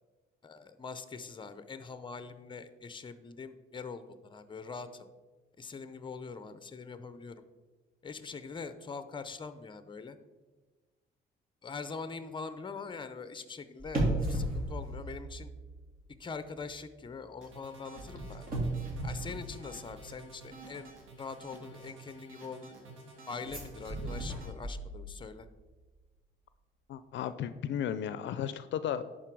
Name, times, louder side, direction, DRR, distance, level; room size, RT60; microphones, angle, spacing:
voice 1, 0.4-5.1 5.6-7.3 8.0-10.2 11.6-15.5 16.2-18.5 19.0-22.8 23.3-25.5, left 4 dB, 25° left, 12 dB, 0.6 m, -43 dB
sound 1, 13.8-16.1 16.4-16.7 18.0-20.2 23.4-25.3 25.6-25.7, right 1 dB, 45° right, 2.5 m, -35 dB
sound 2, 17.4-24.5, right 3 dB, 80° right, 2.0 m, -51 dB
voice 2, 26.9-29.0, left 9 dB, 70° left, 12 dB, 0.4 m, -34 dB
11.0 x 4.2 x 4.6 m, 1.3 s
cardioid pair, 90°, 20 cm